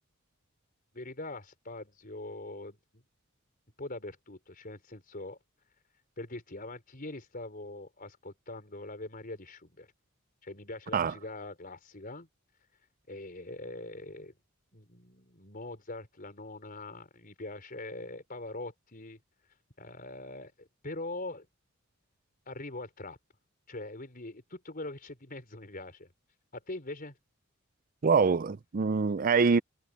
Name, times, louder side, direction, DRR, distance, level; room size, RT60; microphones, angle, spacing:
voice 1, 0.9-3.0 3.8-5.4 6.2-9.9 10.4-12.3 13.1-14.3 14.7-19.2 19.8-21.5 22.5-23.2 23.7-26.1 26.5-27.1, left 2 dB, 40° left, 5.0 m, -42 dB
voice 2, 28.0-29.6, right 5 dB, 40° right, 0.5 m, -24 dB
head